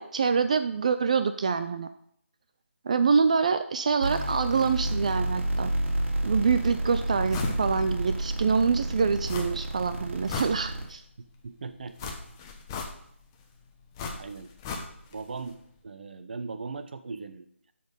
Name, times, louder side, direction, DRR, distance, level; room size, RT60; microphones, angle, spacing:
voice 1, 0.0-1.9 2.9-5.7 6.2-11.0, right 5 dB, 30° right, 10 dB, 0.4 m, -25 dB
sound 1, 4.0-10.9, right 1 dB, 60° right, 2.7 m, -30 dB
sound 2, 7.3-7.6 8.0-8.1 9.3-9.8 10.1-11.0 12.0-13.3 14.0-15.2 15.5-15.6, left 4 dB, 15° left, 0.8 m, -36 dB
voice 2, 11.2-12.1 14.2-14.5 15.1-15.6 15.8-17.7, right 4 dB, 45° right, 10 dB, 0.8 m, -39 dB
12.0 x 4.1 x 5.4 m, 0.68 s
figure-of-eight pair, 160°, 7 cm